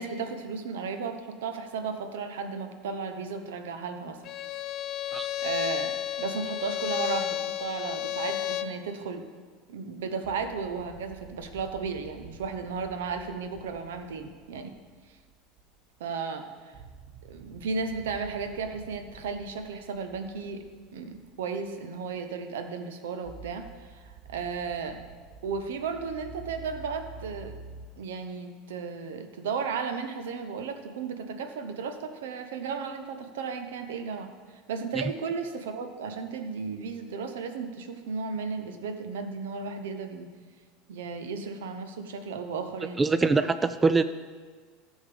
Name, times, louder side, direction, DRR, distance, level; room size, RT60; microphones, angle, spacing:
voice 1, 0.0-4.2 5.4-9.3 9.7-14.7 16.0-16.7 17.3-20.6 20.9-25.0 25.4-27.6 28.0-34.3 34.7-40.3 40.9-43.5, right 5 dB, 70° right, 7 dB, 0.8 m, -34 dB
Bowed string instrument, 4.2-8.8, left 12 dB, 45° left, 0.5 m, -32 dB
sound 1, 10.2-16.2 16.6-21.8 22.1-22.3 23.2-27.9, right 4 dB, 45° right, 1.1 m, -49 dB
voice 2, 43.0-44.0, right 4 dB, 20° right, 12 dB, 0.3 m, -23 dB
13.5 x 6.4 x 3.5 m, 1.5 s
figure-of-eight pair, 75°, 0 cm